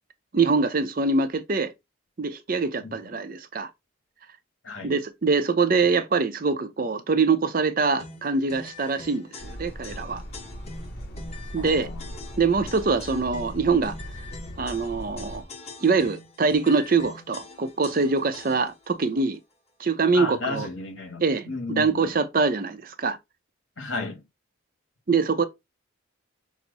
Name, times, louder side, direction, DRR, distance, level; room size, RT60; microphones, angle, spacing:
voice 1, 0.3-1.7 2.2-3.7 4.8-10.2 11.5-11.9 12.4-14.0 14.6-15.4 15.8-19.4 19.8-20.7 21.2-23.2 25.1-25.4, right 4 dB, 45° right, 0.5 m, -24 dB
voice 2, 4.6-5.0 11.6-12.2 20.1-22.1 23.8-24.2, left 3 dB, 70° left, 1.7 m, -34 dB
sound 1, 8.0-18.9, left 3 dB, 30° left, 1.0 m, -44 dB
sound 2, 9.4-15.4, equal, 50° left, 1.8 m, -39 dB
6.0 x 2.0 x 4.0 m
head